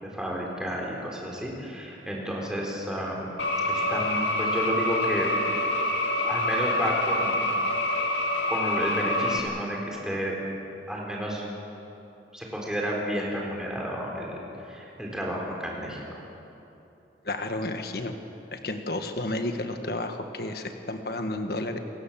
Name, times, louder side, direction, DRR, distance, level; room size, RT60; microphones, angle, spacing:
voice 1, 0.0-3.3 3.7-5.3 6.2-7.4 8.5-10.4 10.9-11.4 12.3-14.4 14.6-16.2, equal, 5° right, -2 dB, 4.2 m, -31 dB
sound 1, 3.4-9.4, left 1 dB, 85° left, 2.6 m, -26 dB
voice 2, 17.2-18.2 18.5-21.8, left 2 dB, 60° left, 6 dB, 1.5 m, -31 dB
28.5 x 17.0 x 7.5 m, 2.9 s
head